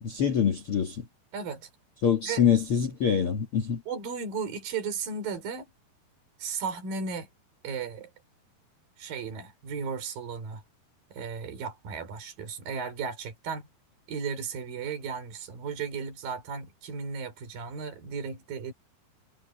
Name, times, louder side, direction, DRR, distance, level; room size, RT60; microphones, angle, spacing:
voice 1, 0.0-1.1 2.0-3.8, left 7 dB, 65° left, 1.3 m, -25 dB
voice 2, 1.3-1.7 2.3-2.4 3.9-5.7 6.4-7.3 7.6-8.1 9.0-10.6 11.1-13.7 14.1-18.7, right 5 dB, 55° right, 6.3 m, -35 dB
omnidirectional pair, 5.0 m